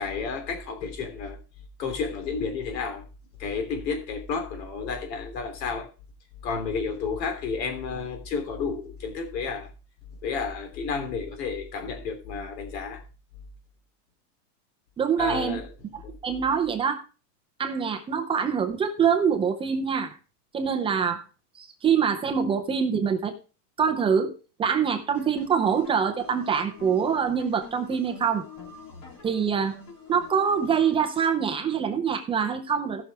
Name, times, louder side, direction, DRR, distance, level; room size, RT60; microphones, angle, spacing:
voice 1, 0.0-1.4 1.8-3.0 3.4-5.9 6.4-9.7 10.2-13.0 15.2-15.7 16.0-16.2, left 5 dB, 85° left, 3.3 m, -31 dB
voice 2, 15.0-15.6 15.9-17.0 17.6-20.2 20.5-21.2 21.6-23.3 23.8-24.3 24.6-28.4 29.2-29.8 30.1-33.0, right 7 dB, 10° right, 0.5 m, -25 dB
sound 1, 25.1-31.2, left 4 dB, 40° left, 3.2 m, -46 dB
16.0 x 6.1 x 3.4 m
supercardioid pair, 160°, 49 cm